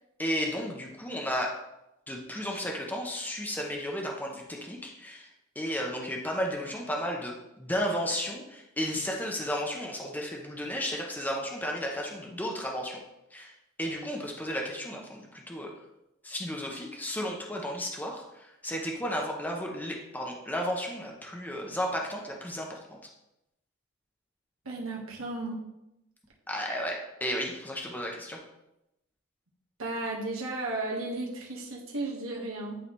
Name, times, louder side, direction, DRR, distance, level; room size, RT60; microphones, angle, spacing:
voice 1, 0.2-1.6 2.1-5.3 5.5-13.0 13.3-13.5 13.8-15.7 16.2-23.0 26.5-28.4, equal, 10° left, 0 dB, 0.8 m, -33 dB
voice 2, 24.6-25.6 29.8-32.8, right 2 dB, 75° right, -2 dB, 1.5 m, -34 dB
11.0 x 3.8 x 3.2 m, 0.88 s
head